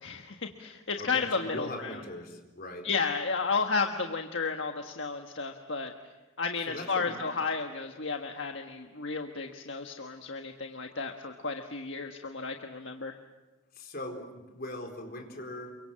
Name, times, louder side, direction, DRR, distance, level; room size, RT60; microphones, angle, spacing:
voice 1, 0.0-1.9 2.8-5.9 6.4-13.1, left 4 dB, 70° left, 4 dB, 1.5 m, -33 dB
voice 2, 1.0-2.9 6.6-7.2 13.7-15.8, left 1 dB, 50° left, 2 dB, 4.4 m, -40 dB
29.0 x 24.5 x 7.6 m, 1.1 s
head